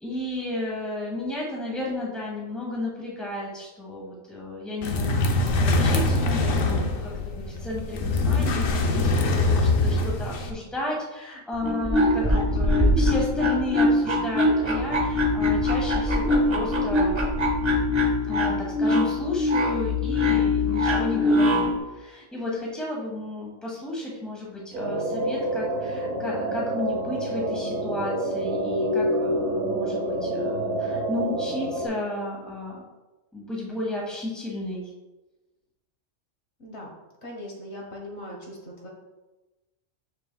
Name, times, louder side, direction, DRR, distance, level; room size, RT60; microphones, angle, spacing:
voice 1, 0.0-5.3 5.6-17.2 18.2-32.8 33.3-34.9, left 2 dB, ahead, -4 dB, 1.4 m, -33 dB
sound 1, 4.8-10.5, left 2 dB, 85° left, 1.1 m, -23 dB
sound 2, 11.5-21.8, left 2 dB, 25° right, 0.7 m, -22 dB
sound 3, 24.7-31.9, right 1 dB, 90° right, 1.5 m, -27 dB
voice 2, 36.6-36.9 37.2-38.9, left 1 dB, 60° left, -2 dB, 1.4 m, -39 dB
6.8 x 6.4 x 2.3 m, 1.1 s
omnidirectional pair, 1.3 m